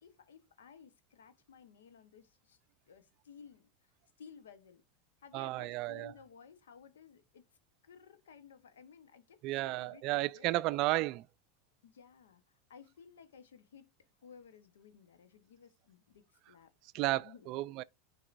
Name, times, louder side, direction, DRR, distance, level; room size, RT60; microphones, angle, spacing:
voice 1, 0.0-2.6 2.9-3.7 4.2-4.8 5.2-7.4 7.8-10.5 11.8-12.4 12.7-13.9 14.2-17.6, left 6 dB, 90° left, 1.0 m, -57 dB
voice 2, 5.3-6.1 9.4-11.2 16.9-17.8, right 18 dB, 55° right, 0.4 m, -33 dB
11.0 x 4.7 x 2.6 m
hypercardioid pair, 110°, 0 cm